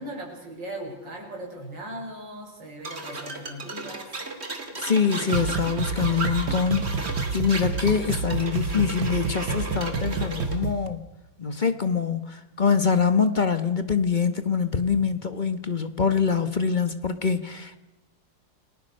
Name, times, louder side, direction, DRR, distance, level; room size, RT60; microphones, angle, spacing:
voice 1, 0.0-4.1, right 1 dB, 65° right, 0 dB, 6.7 m, -38 dB
sound 1, 2.8-10.6, right 2 dB, 30° right, 2.6 m, -35 dB
voice 2, 4.8-11.0 11.4-17.8, left 6 dB, 30° left, 10 dB, 1.0 m, -24 dB
sound 2, 5.3-10.9, right 4 dB, 80° right, 2.1 m, -29 dB
29.5 x 19.0 x 6.5 m, 1.0 s
omnidirectional pair, 2.1 m